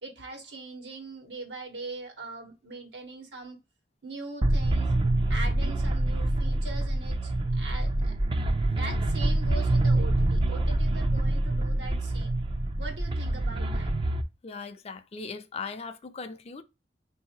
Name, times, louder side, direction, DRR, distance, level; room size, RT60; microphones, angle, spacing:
voice 1, 0.0-3.6 4.0-4.9 5.3-8.1 8.7-12.3 12.8-13.9, right 3 dB, 85° right, 1.4 m, -41 dB
sound 1, 4.4-14.2, right 1 dB, 30° right, 0.5 m, -26 dB
voice 2, 14.4-16.6, left 4 dB, 35° left, 0.5 m, -39 dB
3.7 x 2.8 x 4.3 m
head